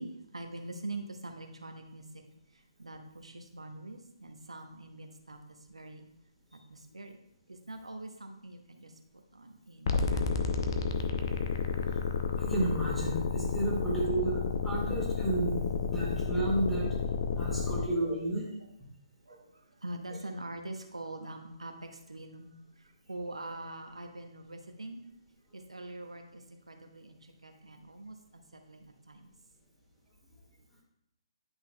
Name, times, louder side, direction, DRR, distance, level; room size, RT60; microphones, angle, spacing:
voice 1, 0.0-2.2 2.5-5.4 5.7-6.0 6.5-7.2 7.5-8.9 9.3-10.5 13.7-13.8 15.8-16.0 16.4-16.6 17.4-18.2 18.6-18.7 19.3-22.5 22.8-25.0 25.5-29.3, right 2 dB, 80° right, 4 dB, 1.0 m, -44 dB
sound 1, 9.9-17.9, left 5 dB, 45° left, 0.7 m, -31 dB
voice 2, 12.3-16.9 17.4-18.5, right 2 dB, ahead, -8 dB, 1.9 m, -32 dB
11.0 x 5.8 x 2.3 m, 0.78 s
figure-of-eight pair, 135°, 3 cm